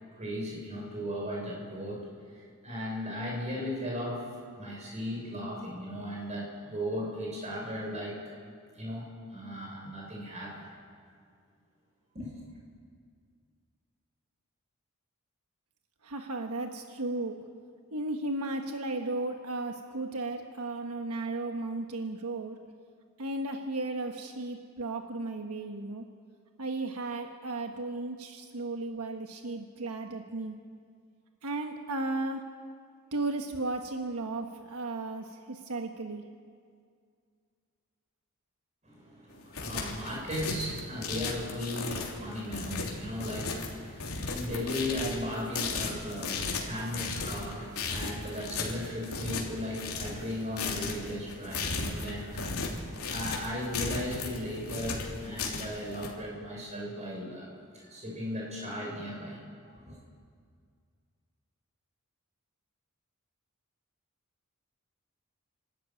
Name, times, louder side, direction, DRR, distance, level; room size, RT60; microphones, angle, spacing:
voice 1, 0.2-2.0 2.3-4.2 4.6-8.2 8.7-10.7 12.1-12.4 38.8-52.7 53.0-59.4 59.8-59.9, equal, 30° right, -2 dB, 6.8 m, -36 dB
voice 2, 16.0-17.4 17.9-22.6 23.2-26.0 26.6-30.6 31.4-32.4 33.1-36.2, right 2 dB, 85° right, 4 dB, 1.3 m, -35 dB
sound 1, 39.3-56.1, left 4 dB, 75° left, 3.2 m, -35 dB
29.5 x 13.0 x 9.1 m, 2.2 s
head